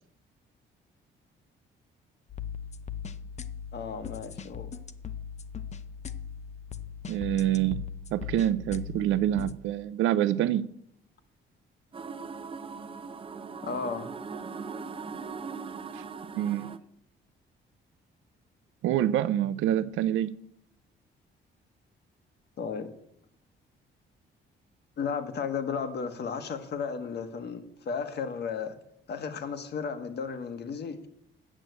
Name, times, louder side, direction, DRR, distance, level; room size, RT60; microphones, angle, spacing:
sound 1, 2.3-9.5, left 7 dB, 35° left, 0.6 m, -39 dB
voice 1, 3.7-4.7 13.6-14.1 22.6-22.9 25.0-28.7 29.1-31.0, left 6 dB, 55° left, 1.4 m, -34 dB
voice 2, 7.1-10.7 15.9-16.0 16.3-16.7 18.8-20.3, right 12 dB, 80° right, 0.5 m, -26 dB
sound 2, 11.9-16.8, right 5 dB, 25° right, 0.7 m, -40 dB
8.9 x 6.1 x 8.0 m
cardioid pair, 90°, 20 cm